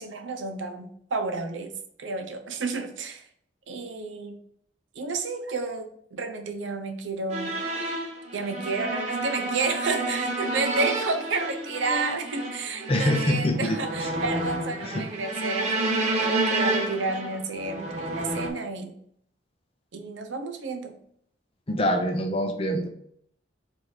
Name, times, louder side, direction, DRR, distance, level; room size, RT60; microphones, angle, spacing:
voice 1, 0.0-3.3 3.7-4.4 4.9-7.6 8.3-19.0 19.9-21.0, right 4 dB, 85° right, 6 dB, 0.7 m, -31 dB
sound 1, 7.3-18.5, right 2 dB, 35° right, 0.8 m, -30 dB
voice 2, 12.9-13.8 14.8-15.1 21.7-22.9, left 1 dB, 30° left, 5 dB, 0.6 m, -25 dB
4.3 x 2.6 x 4.6 m, 0.68 s
head